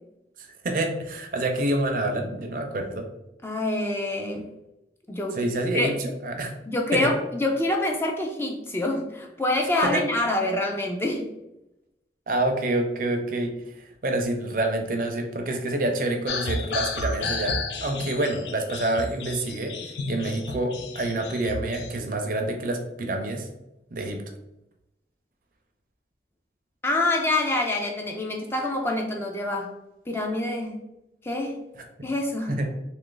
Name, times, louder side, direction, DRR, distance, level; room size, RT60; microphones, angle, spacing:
voice 1, 0.4-3.1 5.3-6.5 6.9-7.1 9.8-10.0 12.3-19.8 20.1-23.5 23.9-24.3 31.8-31.9 32.5-32.7, right 1 dB, 50° right, 4 dB, 0.5 m, -27 dB
voice 2, 3.4-4.5 5.1-5.5 5.7-6.0 6.7-11.3 26.8-29.7 30.1-30.9 31.2-31.6 32.0-32.5, left 2 dB, 15° left, 1 dB, 0.3 m, -26 dB
sound 1, 16.3-22.0, left 3 dB, 80° left, 0.4 m, -32 dB
3.0 x 2.5 x 3.8 m, 0.90 s
head